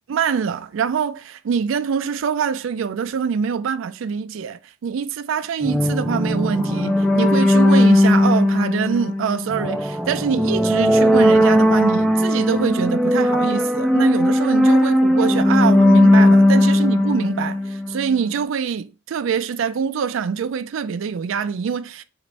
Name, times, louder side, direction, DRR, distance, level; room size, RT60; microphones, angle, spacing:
voice 1, 0.1-22.0, right 6 dB, 75° right, 0.3 m, -24 dB
sound 1, 5.6-18.1, left 1 dB, ahead, 0.3 m, -17 dB
4.3 x 3.0 x 2.6 m
head